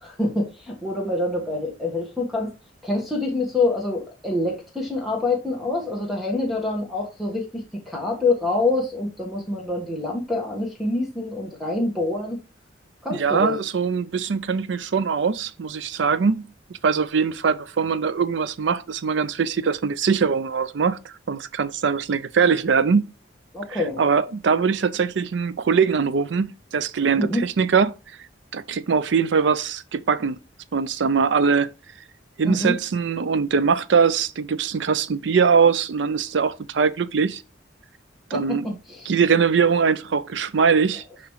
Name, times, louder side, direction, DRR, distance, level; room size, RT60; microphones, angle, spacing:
voice 1, 0.0-2.5 2.8-12.4 13.0-13.6 23.5-24.0 27.1-27.4 32.4-32.7 38.3-39.1, left 2 dB, ahead, 1.4 m, -26 dB
voice 2, 13.1-16.5 16.8-23.0 23.7-27.9 28.5-30.4 30.7-31.7 32.4-37.4 38.3-38.7 39.1-41.0, right 5 dB, 70° right, 0.5 m, -22 dB
6.8 x 5.1 x 3.1 m
head